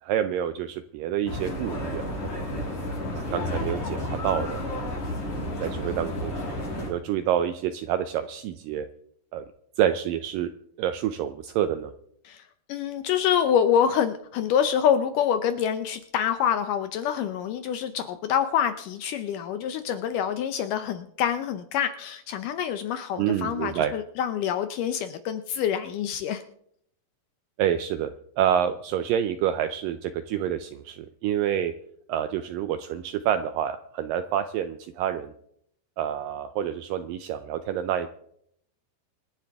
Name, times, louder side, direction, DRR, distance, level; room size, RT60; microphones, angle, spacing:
voice 1, 0.0-2.7 3.1-4.6 5.3-6.3 6.8-8.9 9.3-9.4 9.8-10.5 10.8-11.9 23.2-23.9 27.6-31.7 32.1-35.3 36.0-38.1, right 10 dB, 80° right, 9 dB, 2.1 m, -28 dB
sound 1, 1.3-6.9, left 1 dB, 55° left, 6.7 m, -31 dB
voice 2, 12.7-26.4, left 8 dB, 80° left, 9 dB, 1.9 m, -26 dB
26.0 x 10.5 x 3.5 m, 0.70 s
omnidirectional pair, 4.4 m